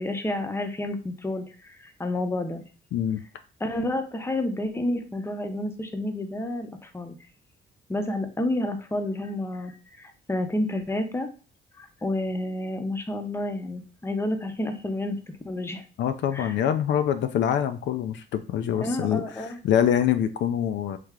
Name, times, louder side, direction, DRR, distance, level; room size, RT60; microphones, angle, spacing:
voice 1, 0.0-2.6 3.6-7.2 7.9-9.7 10.0-11.3 11.8-15.2 15.4-15.8 16.3-16.6 18.7-19.6, left 1 dB, 10° left, 7 dB, 0.6 m, -30 dB
voice 2, 2.9-3.2 16.0-21.0, left 9 dB, 65° left, 9 dB, 0.4 m, -25 dB
3.2 x 2.8 x 3.6 m, 0.37 s
cardioid pair, 90°, 20 cm